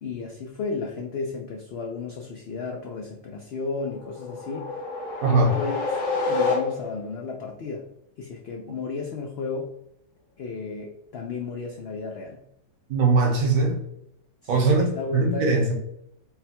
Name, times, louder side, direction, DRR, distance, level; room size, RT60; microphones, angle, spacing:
voice 1, 0.0-4.8 5.2-5.9 6.3-7.8 8.2-9.7 10.4-12.4 14.4-15.6, left 4 dB, 90° left, 1 dB, 0.5 m, -33 dB
sound 1, 3.9-7.1, left 3 dB, 60° left, 1.2 m, -28 dB
voice 2, 5.2-5.6 12.9-13.8 14.5-15.7, right 3 dB, 65° right, 1 dB, 1.2 m, -21 dB
3.8 x 2.2 x 4.2 m, 0.78 s
omnidirectional pair, 1.7 m